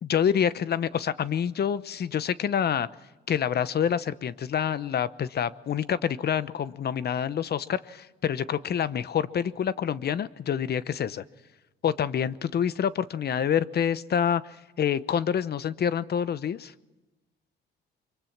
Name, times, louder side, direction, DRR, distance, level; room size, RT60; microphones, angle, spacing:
voice 1, 0.0-2.9 3.3-11.2 11.8-16.7, left 8 dB, 55° left, 16 dB, 0.9 m, -27 dB
24.5 x 23.5 x 6.0 m, 1.1 s
cardioid pair, 90°, 20 cm